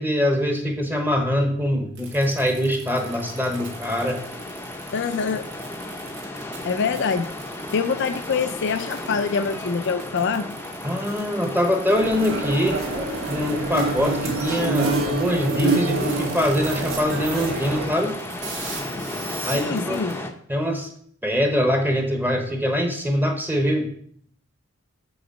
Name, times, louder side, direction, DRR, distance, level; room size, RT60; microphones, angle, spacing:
voice 1, 0.0-4.2 10.8-12.8 13.3-18.2 19.4-20.0 20.5-20.9 21.2-23.9, equal, 10° right, 4 dB, 0.9 m, -23 dB
sound 1, 1.9-20.1, right 5 dB, 60° right, 2.1 m, -40 dB
sound 2, 2.9-20.3, left 1 dB, 10° left, 0.6 m, -35 dB
voice 2, 4.9-5.5 6.6-7.3 7.7-10.5 19.5-20.1, left 5 dB, 60° left, 10 dB, 0.5 m, -25 dB
sound 3, 11.9-17.9, right 2 dB, 80° right, 2.5 m, -26 dB
7.9 x 4.0 x 5.3 m, 0.62 s
head